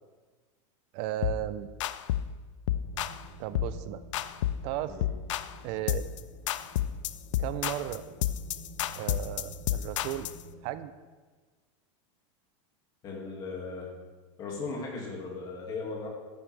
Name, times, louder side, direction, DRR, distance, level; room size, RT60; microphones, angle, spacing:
voice 1, 0.9-1.7 3.4-4.0 4.6-5.0 5.6-6.1 7.4-8.1 8.9-10.3 10.6-10.9, right 13 dB, 35° right, 13 dB, 0.5 m, -35 dB
sound 1, 1.2-1.4 1.8-2.3 2.7-3.2 3.5-3.8 4.1-4.7 5.0-5.5 5.9-6.2 6.5-10.4, left 12 dB, 75° left, 0.5 m, -31 dB
sound 2, 2.8-10.7, right 4 dB, 60° right, 3.3 m, -51 dB
voice 2, 13.0-13.9 14.4-16.1, left 4 dB, 25° left, -2 dB, 2.2 m, -37 dB
12.5 x 9.8 x 3.4 m, 1.4 s
supercardioid pair, 170°, 16 cm